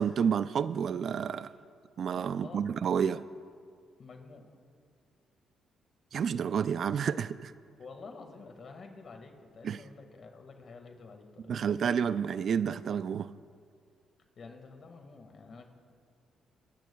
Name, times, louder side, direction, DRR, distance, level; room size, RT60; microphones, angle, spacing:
voice 1, 0.0-1.5 2.0-3.2 6.1-7.5 9.6-9.8 11.5-13.4, right 7 dB, 55° right, 15 dB, 0.3 m, -30 dB
voice 2, 2.2-2.7 4.0-4.5 7.8-11.6 14.4-15.7, left 4 dB, 50° left, 4 dB, 1.8 m, -49 dB
22.5 x 13.5 x 2.3 m, 2.2 s
cardioid pair, 90°, 0 cm